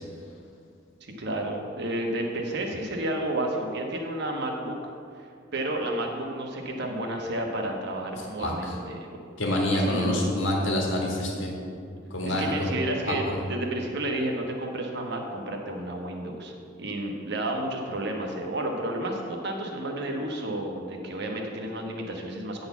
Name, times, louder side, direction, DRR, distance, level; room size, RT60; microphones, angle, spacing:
voice 1, 1.0-4.9 5.5-9.1 9.8-10.3 12.2-16.5 16.8-22.7, right 1 dB, 60° right, 1 dB, 1.2 m, -31 dB
voice 2, 8.4-8.8 9.4-11.5 12.1-12.7 13.0-13.4, left 1 dB, 70° left, -1 dB, 1.5 m, -27 dB
9.6 x 4.0 x 7.1 m, 2.4 s
head